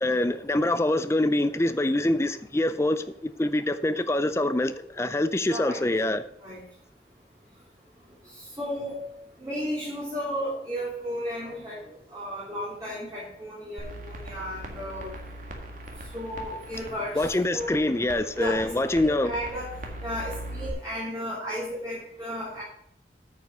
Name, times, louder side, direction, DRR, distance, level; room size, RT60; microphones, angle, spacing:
voice 1, 0.0-6.2 17.2-19.3, left 1 dB, 15° left, 0.4 m, -25 dB
voice 2, 5.5-5.8 6.4-6.6 8.4-9.1 9.4-11.8 12.1-15.1 16.1-17.8 18.4-18.7 19.0-19.7 20.0-22.6, equal, 20° right, 2.7 m, -34 dB
sound 1, 13.8-20.7, right 1 dB, 45° right, 1.8 m, -40 dB
9.0 x 5.5 x 6.7 m
head